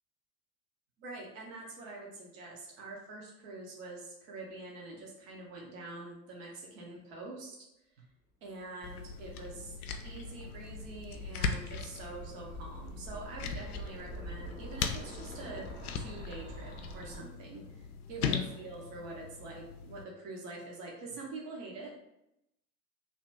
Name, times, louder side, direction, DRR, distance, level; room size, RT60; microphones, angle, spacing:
voice 1, 1.0-7.6 8.0-8.1 8.4-9.8 10.0-15.7 16.0-17.8 18.1-21.9, right 2 dB, 50° right, -2 dB, 0.9 m, -45 dB
sound 1, 8.8-20.0, left 6 dB, 65° left, 0.5 m, -39 dB
sound 2, 8.8-17.2, equal, 15° right, 0.7 m, -47 dB
2.9 x 2.3 x 3.2 m, 0.84 s
figure-of-eight pair, 85°, 50 cm